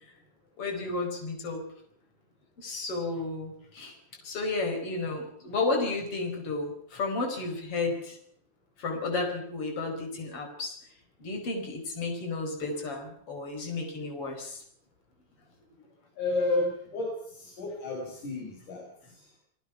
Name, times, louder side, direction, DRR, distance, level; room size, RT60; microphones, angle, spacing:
voice 1, 0.6-1.6 2.6-3.9 4.2-8.2 8.8-10.8 11.2-14.6, left 3 dB, 45° left, 4 dB, 5.9 m, -32 dB
voice 2, 16.2-19.3, left 2 dB, 80° left, -1 dB, 7.1 m, -32 dB
30.0 x 20.0 x 6.1 m, 0.64 s
omnidirectional pair, 3.5 m